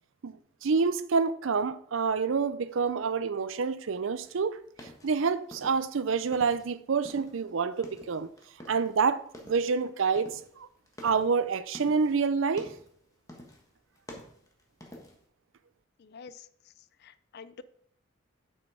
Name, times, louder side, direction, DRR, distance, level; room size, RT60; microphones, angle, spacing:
voice 1, 0.6-4.6 5.0-8.3 8.7-10.4 11.0-12.7, right 5 dB, 75° right, 0.5 m, -27 dB
sound 1, 4.2-6.7 7.0-9.0 9.3-9.7 10.2-12.2 12.5-13.0 13.3-13.7 14.0-15.3, left 1 dB, 15° left, 1.4 m, -48 dB
voice 2, 16.0-16.5 17.0-17.6, left 5 dB, 55° left, 0.4 m, -47 dB
7.6 x 6.2 x 4.9 m
head